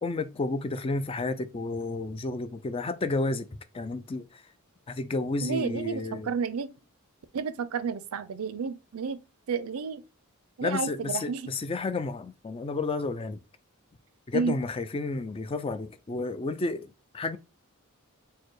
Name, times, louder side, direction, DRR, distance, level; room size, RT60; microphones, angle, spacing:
voice 1, 0.0-3.5 3.7-4.4 4.9-6.3 10.6-13.4 14.3-17.4, left 3 dB, 25° left, 0.4 m, -31 dB
voice 2, 5.4-6.7 7.3-9.2 9.5-10.0 10.6-11.5 14.3-14.5, right 5 dB, 80° right, 0.5 m, -31 dB
4.5 x 2.2 x 4.6 m
head